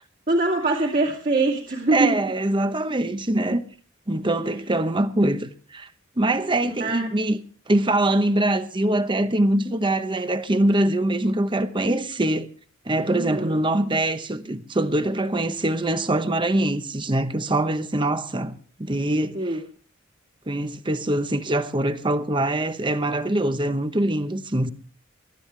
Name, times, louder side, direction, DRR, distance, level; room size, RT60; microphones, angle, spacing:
voice 1, 0.3-2.2 6.8-7.1 13.1-13.6 19.3-19.6, right 2 dB, 40° right, 2.4 m, -23 dB
voice 2, 1.9-3.6 4.1-5.9 6.2-7.4 7.7-12.5 12.8-19.6 20.5-24.7, right 1 dB, 25° right, 1.0 m, -23 dB
23.0 x 12.5 x 3.3 m
head